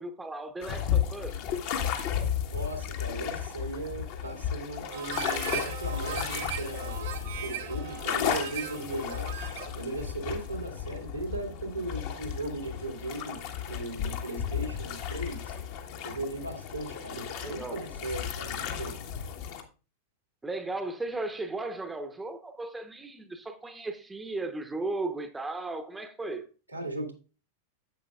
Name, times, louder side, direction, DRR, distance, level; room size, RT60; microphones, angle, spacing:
voice 1, 0.0-1.4 17.3-17.8 20.4-26.4, right 2 dB, 10° right, 0.9 m, -36 dB
sound 1, 0.6-19.6, left 8 dB, 50° left, 1.3 m, -34 dB
voice 2, 2.5-7.0 7.4-9.3 9.7-13.4 13.6-15.5 16.0-19.0 26.7-27.1, right 2 dB, 85° right, 2.2 m, -37 dB
Harmonica, 4.9-9.8, right 10 dB, 60° right, 1.4 m, -38 dB
10.5 x 8.1 x 2.4 m
figure-of-eight pair, 90°, 0 cm